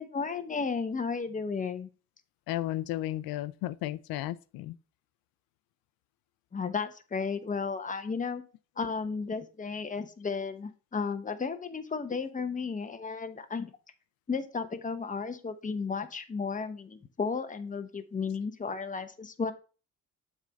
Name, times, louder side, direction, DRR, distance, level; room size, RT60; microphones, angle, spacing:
voice 1, 0.0-1.9 6.5-8.4 8.8-13.7 14.3-19.5, left 5 dB, 20° left, 0.9 m, -34 dB
voice 2, 2.5-4.7, left 15 dB, 80° left, 0.6 m, -34 dB
7.2 x 3.8 x 5.3 m
cardioid pair, 95°, 35 cm